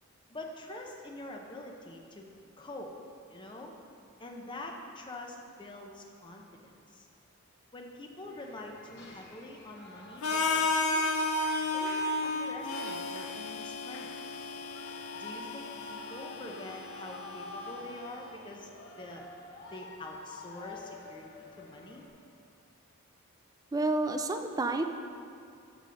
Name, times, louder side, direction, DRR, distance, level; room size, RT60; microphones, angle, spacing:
voice 1, 0.3-2.3 2.6-2.9 3.3-3.7 4.2-7.1 7.7-11.0 11.7-14.1 15.2-18.7 19.0-19.3 19.7-22.0, left 1 dB, 20° left, 0 dB, 0.7 m, -45 dB
Shout / Cheering, 8.2-22.1, left 3 dB, 55° left, 0.9 m, -49 dB
Harmonica, 10.2-18.1, left 2 dB, 90° left, 0.6 m, -33 dB
voice 2, 23.7-24.8, right 2 dB, 15° right, 6 dB, 0.3 m, -29 dB
7.5 x 5.4 x 5.1 m, 2.5 s
head